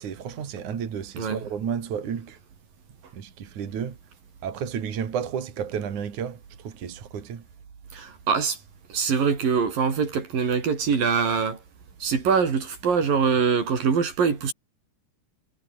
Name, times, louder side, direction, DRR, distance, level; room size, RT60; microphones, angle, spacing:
voice 1, 0.0-2.4 3.1-4.0 4.4-7.4, right 8 dB, 60° right, 4.0 m, -32 dB
voice 2, 1.2-1.5 7.9-8.6 8.9-11.6 12.0-14.5, right 6 dB, 90° right, 6.1 m, -23 dB
omnidirectional pair, 3.9 m